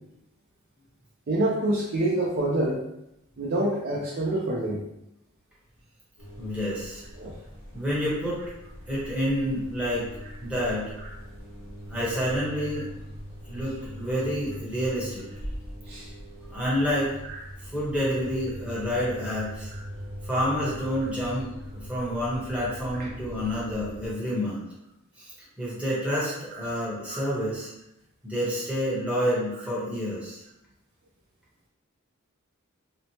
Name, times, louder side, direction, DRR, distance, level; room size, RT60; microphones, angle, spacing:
voice 1, 1.3-2.8 3.4-4.8 7.2-7.3 15.9-16.1 17.3-17.4 19.7-19.8 27.1-27.2, right 1 dB, 50° right, -4 dB, 0.4 m, -26 dB
sound 1, 6.2-24.1, equal, 70° left, 1.2 m, -41 dB
voice 2, 6.4-7.0 7.7-8.4 8.9-10.1 10.4-10.9 11.9-12.8 13.5-15.2 16.5-17.1 17.6-19.7 20.2-21.5 21.7-24.6 25.2-25.3 25.6-27.7 28.2-30.4, equal, 5° right, -8 dB, 0.9 m, -28 dB
2.9 x 2.1 x 2.8 m, 0.85 s
head